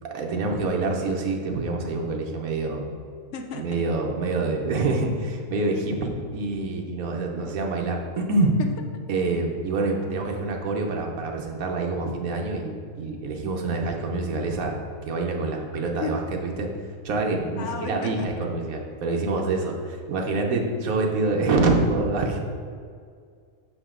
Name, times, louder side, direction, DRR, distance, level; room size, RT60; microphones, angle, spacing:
voice 1, 0.0-2.8 3.5-8.5 9.1-16.7 17.0-22.4, right 3 dB, 85° right, 1 dB, 1.3 m, -26 dB
voice 2, 3.3-3.7 4.8-4.9 8.6-8.7 16.0-16.2 17.6-18.3, left 5 dB, 65° left, 5 dB, 0.9 m, -33 dB
6.4 x 5.1 x 3.7 m, 2.1 s
omnidirectional pair, 1.5 m